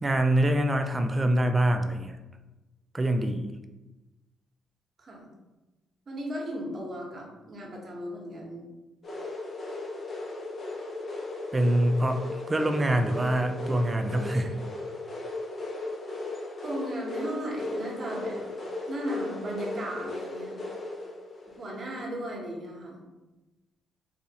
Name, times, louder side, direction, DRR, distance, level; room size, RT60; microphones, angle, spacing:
voice 1, 0.0-2.2 2.9-3.5 11.5-14.6, right 1 dB, 20° right, 6 dB, 0.4 m, -25 dB
voice 2, 6.1-8.6 16.6-18.4 18.9-20.6 21.6-23.0, equal, 45° right, -1 dB, 1.0 m, -36 dB
sound 1, 9.0-22.2, left 2 dB, 45° left, 0.7 m, -37 dB
4.0 x 2.4 x 2.8 m, 1.1 s
cardioid pair, 90°, 0 cm